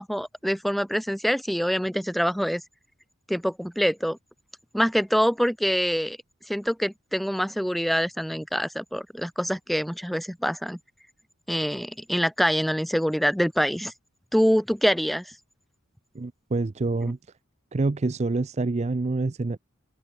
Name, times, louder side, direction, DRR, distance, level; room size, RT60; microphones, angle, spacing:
voice 1, 0.0-2.6 3.3-4.2 4.7-6.2 6.5-10.8 11.5-13.9 14.3-15.2 17.0-17.1, equal, ahead, 1.8 m, -25 dB
voice 2, 16.1-17.2 17.7-19.6, right 3 dB, 30° right, 0.4 m, -26 dB
open air
head